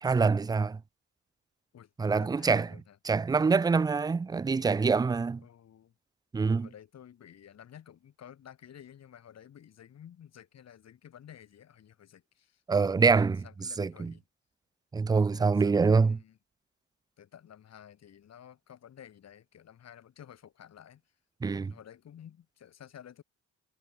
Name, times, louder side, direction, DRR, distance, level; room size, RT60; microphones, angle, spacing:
voice 1, 0.0-0.8 2.0-2.7 3.1-5.4 6.3-6.7 12.7-13.4 13.8-14.1 14.9-16.2 21.4-21.7, right 4 dB, 15° right, 0.3 m, -25 dB
voice 2, 1.7-3.0 5.4-5.9 6.4-14.2 15.2-16.4 17.2-21.0 21.5-23.2, left 9 dB, 60° left, 2.6 m, -52 dB
cardioid pair, 90°, 30 cm